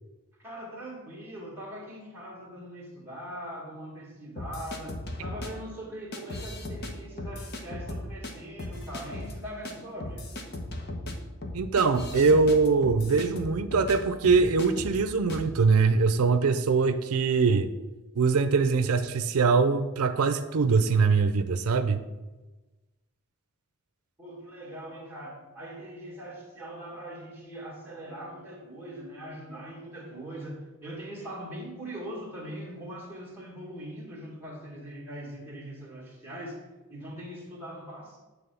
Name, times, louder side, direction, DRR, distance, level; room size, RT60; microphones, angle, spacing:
voice 1, 0.4-10.2 24.2-38.2, equal, 10° right, -4 dB, 2.0 m, -41 dB
sound 1, 4.4-5.5 6.1-6.9 7.2-8.3 8.6-9.3 9.6-9.7 10.0-14.0 14.2-15.0 15.3-15.5, left 1 dB, 45° left, 1.0 m, -37 dB
voice 2, 11.5-17.7 18.2-22.0, right 4 dB, 90° right, 10 dB, 0.5 m, -23 dB
9.0 x 3.5 x 6.9 m, 1.1 s
head